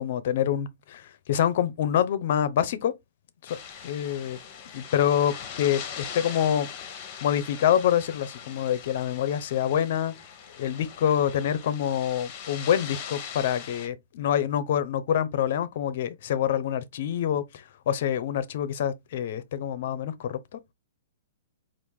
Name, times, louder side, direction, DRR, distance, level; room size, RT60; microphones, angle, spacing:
voice 1, 0.0-2.9 3.4-3.6 3.8-4.4 4.7-6.7 7.2-10.1 10.6-20.6, left 9 dB, 55° left, 0.7 m, -26 dB
sound 1, 3.5-13.9, left 8 dB, 35° left, 1.0 m, -41 dB
4.6 x 2.5 x 3.6 m
hypercardioid pair, 140°, 0 cm